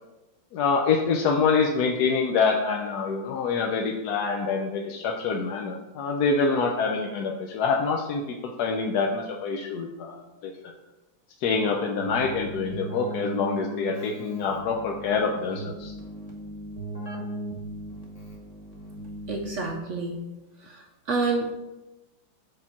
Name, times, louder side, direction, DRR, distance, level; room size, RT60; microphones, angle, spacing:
voice 1, 0.5-8.2 8.6-10.7 11.4-15.9, left 5 dB, 65° left, 2 dB, 1.1 m, -26 dB
Keyboard (musical), 12.0-19.8, right 1 dB, 25° left, 1.2 m, -37 dB
voice 2, 19.3-20.2 21.1-21.5, right 3 dB, 75° right, 2 dB, 0.6 m, -27 dB
5.3 x 4.8 x 5.8 m, 1.0 s
omnidirectional pair, 2.1 m